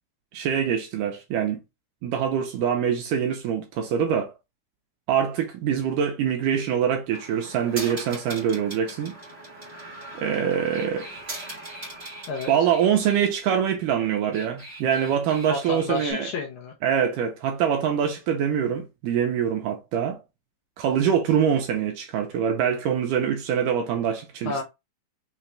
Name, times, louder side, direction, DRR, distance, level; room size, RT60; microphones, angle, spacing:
voice 1, 0.3-1.6 2.0-4.3 5.1-9.1 10.2-11.1 12.5-16.3 16.8-20.2 20.8-24.6, right 8 dB, 80° right, 2.0 m, -24 dB
sound 1, 7.1-13.2 14.1-16.1, right 2 dB, 40° right, 0.9 m, -40 dB
voice 2, 15.4-16.7 24.4-24.6, left 3 dB, 75° left, 1.9 m, -30 dB
5.8 x 2.8 x 3.2 m
omnidirectional pair, 4.3 m